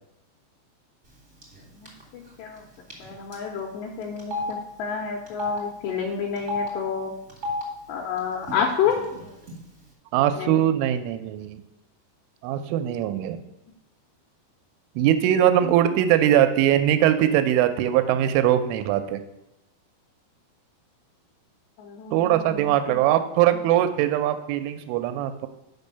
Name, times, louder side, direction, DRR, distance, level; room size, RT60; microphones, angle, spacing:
Telephone, 1.4-1.6 1.9-2.0 2.9-3.0 3.3-3.4 4.2-4.5 5.3-5.6 6.4-6.7 7.3-7.6 8.4-8.5 8.8-9.5, left 2 dB, 50° right, 0.9 m, -30 dB
voice 1, 1.7-2.7 3.0-7.1 7.9-9.0 10.3-10.7 13.3-13.4 15.6-15.7 21.8-23.1, left 7 dB, 75° left, 1 dB, 2.5 m, -30 dB
voice 2, 10.1-11.6 12.4-13.4 15.0-19.2 22.1-25.5, right 11 dB, 85° right, 10 dB, 3.1 m, -21 dB
6.7 x 5.4 x 6.7 m, 0.91 s
omnidirectional pair, 5.6 m